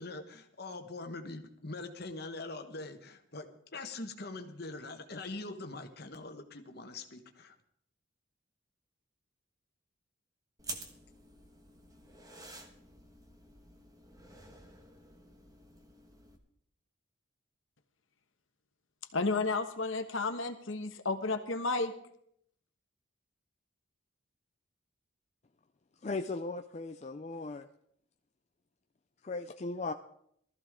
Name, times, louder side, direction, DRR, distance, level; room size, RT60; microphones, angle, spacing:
voice 1, 0.0-3.5 3.7-7.5, left 2 dB, 50° left, 6 dB, 1.3 m, -43 dB
sound 1, 10.6-16.4, right 2 dB, 20° right, 1.3 m, -49 dB
voice 2, 19.1-21.9, left 3 dB, 75° left, 7 dB, 1.3 m, -32 dB
voice 3, 26.0-27.7 29.2-29.9, left 3 dB, 35° left, 5 dB, 0.5 m, -37 dB
19.0 x 14.0 x 3.7 m, 0.70 s
head